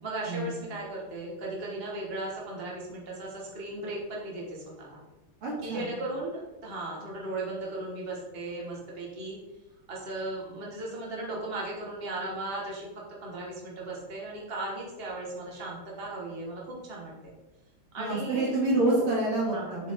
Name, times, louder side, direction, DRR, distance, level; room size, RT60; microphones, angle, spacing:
voice 1, 0.0-5.0 5.6-9.4 9.9-12.9 13.2-17.1 17.9-18.5 18.9-19.1 19.5-19.8, right 2 dB, 30° right, -3 dB, 1.9 m, -36 dB
voice 2, 5.4-5.9 18.0-19.9, right 2 dB, 85° right, -4 dB, 3.5 m, -27 dB
7.2 x 7.2 x 3.8 m, 1.0 s
omnidirectional pair, 2.4 m